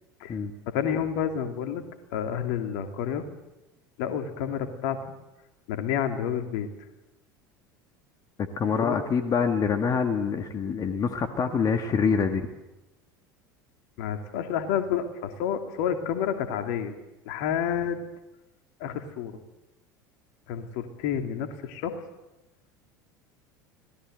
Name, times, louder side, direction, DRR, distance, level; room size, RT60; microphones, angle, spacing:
voice 1, 0.7-1.8 2.1-3.2 4.0-5.0 5.7-6.7 8.8-9.0 14.0-17.0 17.3-18.0 18.8-19.3 20.5-22.0, left 8 dB, 60° left, 6 dB, 2.7 m, -29 dB
voice 2, 8.4-12.5, left 6 dB, 35° left, 7 dB, 1.8 m, -25 dB
26.0 x 18.5 x 7.9 m, 1.0 s
figure-of-eight pair, 70°, 11 cm